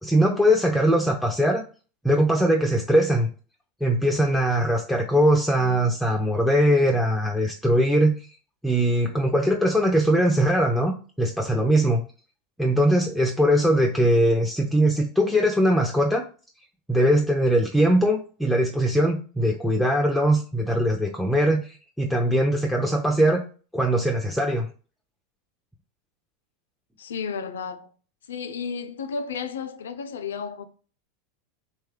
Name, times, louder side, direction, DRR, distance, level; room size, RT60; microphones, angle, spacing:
voice 1, 0.0-1.6 2.0-3.3 3.8-8.1 8.6-10.9 11.2-12.0 12.6-16.2 16.9-21.6 22.0-23.4 23.7-24.7, equal, ahead, 0.4 m, -21 dB
voice 2, 27.0-27.9 28.3-30.6, left 6 dB, 85° left, 0.4 m, -32 dB
3.1 x 2.2 x 3.2 m
hypercardioid pair, 100°, 0 cm